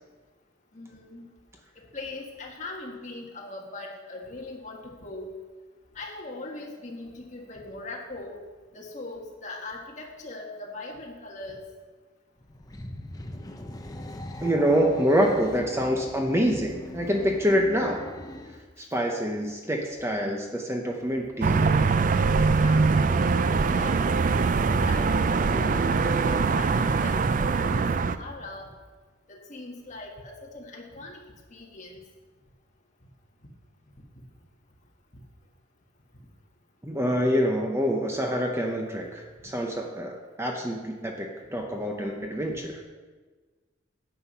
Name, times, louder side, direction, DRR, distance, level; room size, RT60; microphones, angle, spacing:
voice 1, 0.7-1.3 1.9-5.3 6.0-8.4 8.7-11.6 22.3-24.0 24.9-27.9 28.2-28.7 29.3-31.2 31.5-31.9 39.4-39.5, left 2 dB, 40° left, -1 dB, 1.8 m, -40 dB
sound 1, 12.4-18.7, left 1 dB, 20° left, 0.7 m, -40 dB
voice 2, 14.4-18.1 18.8-21.8 36.8-42.8, equal, 15° right, 1 dB, 0.8 m, -26 dB
sound 2, 21.4-28.2, right 4 dB, 40° right, 0.4 m, -23 dB
9.6 x 7.8 x 5.6 m, 1.4 s
head